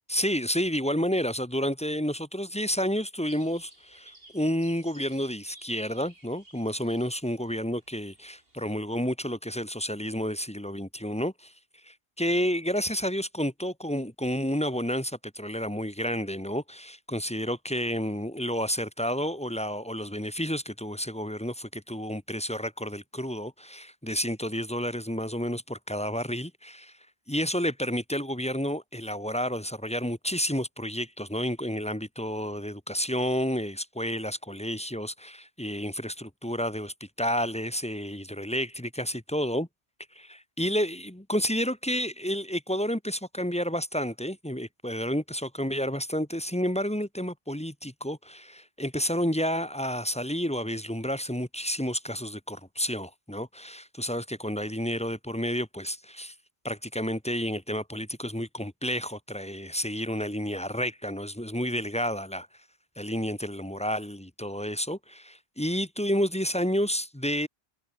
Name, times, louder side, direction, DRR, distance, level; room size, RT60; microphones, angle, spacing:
voice 1, 0.1-11.5 11.8-26.9 27.3-39.7 40.1-56.3 56.6-62.5 63.0-67.5, equal, 5° left, 1.3 m, -30 dB
sound 1, 3.3-8.8, right 1 dB, 65° right, 5.6 m, -55 dB
omnidirectional pair, 1.0 m